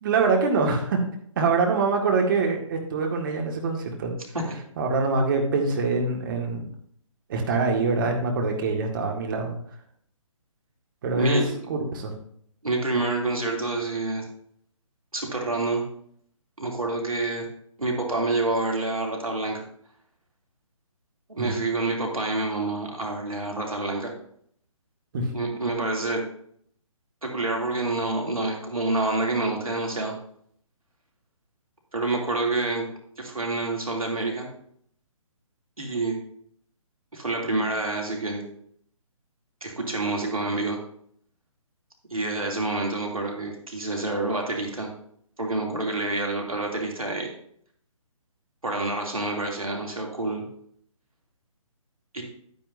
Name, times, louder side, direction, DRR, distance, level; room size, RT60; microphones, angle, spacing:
voice 1, 0.0-1.0 1.4-4.1 4.8-6.7 7.3-9.5 11.0-11.4 11.7-12.1 21.4-21.6 25.1-25.3, right 4 dB, 35° right, 2 dB, 1.8 m, -24 dB
voice 2, 11.1-11.5 12.6-14.2 15.1-15.8 16.6-17.4 17.8-19.6 21.3-24.1 25.3-26.2 27.2-30.1 31.9-32.8 33.2-34.5 35.8-36.2 37.1-38.4 39.6-40.8 42.1-44.9 45.4-47.3 48.6-50.5 52.1-52.2, right 2 dB, 80° right, 0 dB, 2.8 m, -27 dB
10.0 x 9.5 x 2.7 m, 0.65 s
figure-of-eight pair, 140°, 18 cm